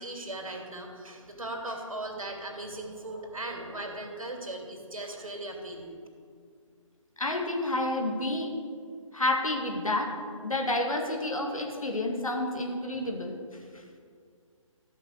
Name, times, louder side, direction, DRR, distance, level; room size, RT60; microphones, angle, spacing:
voice 1, 0.0-5.9, right 1 dB, 80° right, 2 dB, 2.7 m, -38 dB
voice 2, 7.2-8.5 9.1-10.1 10.4-13.4 13.7-14.0, left 2 dB, 85° left, 2 dB, 2.3 m, -29 dB
13.5 x 6.0 x 8.0 m, 2.1 s
figure-of-eight pair, 145°, 17 cm